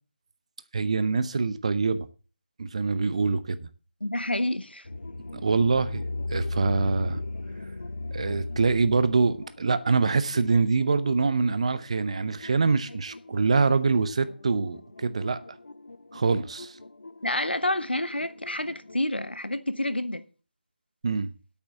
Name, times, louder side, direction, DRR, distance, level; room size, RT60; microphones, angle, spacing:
voice 1, 0.7-2.1 2.6-3.7 5.3-6.0 6.3-7.2 8.1-15.4 16.1-16.8 21.0-21.3, right 4 dB, 40° right, 0.8 m, -25 dB
voice 2, 4.0-4.8 17.2-20.2, left 1 dB, 85° left, 1.1 m, -28 dB
sound 1, 4.8-19.1, left 2 dB, 65° left, 0.6 m, -38 dB
8.7 x 7.1 x 7.8 m
figure-of-eight pair, 160°, 5 cm